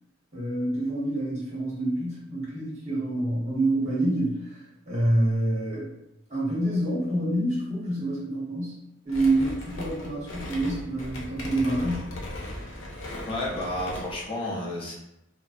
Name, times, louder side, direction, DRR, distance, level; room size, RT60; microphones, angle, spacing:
voice 1, 0.3-5.9 6.3-8.8 9.0-12.1, right 1 dB, 40° right, -7 dB, 0.9 m, -27 dB
sound 1, 9.1-14.3, left 1 dB, 90° left, 0.6 m, -38 dB
voice 2, 13.3-14.9, left 1 dB, 30° left, -5 dB, 0.4 m, -31 dB
2.6 x 2.0 x 2.4 m, 0.86 s
head